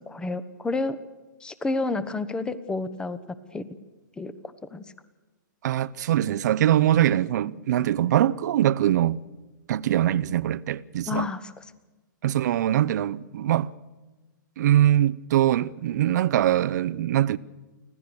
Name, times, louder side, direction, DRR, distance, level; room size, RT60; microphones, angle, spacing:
voice 1, 0.1-1.0 1.4-3.2 3.5-3.7 4.2-4.8 11.1-11.6, left 3 dB, 10° left, 1.0 m, -30 dB
voice 2, 5.6-9.2 9.7-11.3 12.2-13.7 14.6-17.4, right 12 dB, 60° right, 0.7 m, -22 dB
25.5 x 16.0 x 6.9 m
hypercardioid pair, 135°, 11 cm